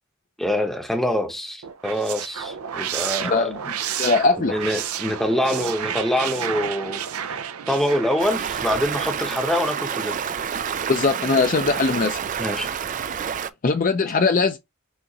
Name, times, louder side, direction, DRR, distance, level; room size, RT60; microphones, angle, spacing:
voice 1, 0.4-3.5 4.4-10.2 12.4-12.7, left 1 dB, ahead, 0.8 m, -25 dB
sound 1, 1.6-9.7, right 8 dB, 90° right, 0.5 m, -31 dB
voice 2, 3.2-3.6 4.0-4.5 10.9-12.2 13.6-14.6, left 4 dB, 40° left, 0.5 m, -20 dB
Stream, 8.2-13.5, right 7 dB, 35° right, 0.3 m, -28 dB
6.3 x 2.5 x 2.9 m
head